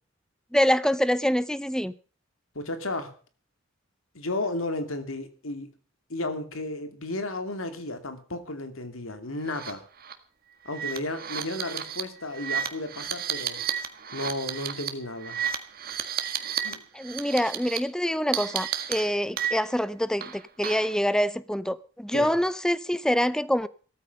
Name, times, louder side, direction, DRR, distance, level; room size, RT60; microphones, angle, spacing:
voice 1, 0.5-1.9 16.9-23.7, equal, 5° left, 0.7 m, -25 dB
voice 2, 2.5-3.1 4.1-5.7 6.1-9.8 10.6-13.6 14.1-15.4 16.6-16.8 22.1-22.3, left 2 dB, 85° left, 2.6 m, -33 dB
sound 1, 9.5-9.7 10.0-10.1 10.7-16.7 17.0-17.8 18.3-19.8 20.2-21.0, right 9 dB, 45° right, 1.8 m, -32 dB
16.0 x 14.0 x 5.4 m
head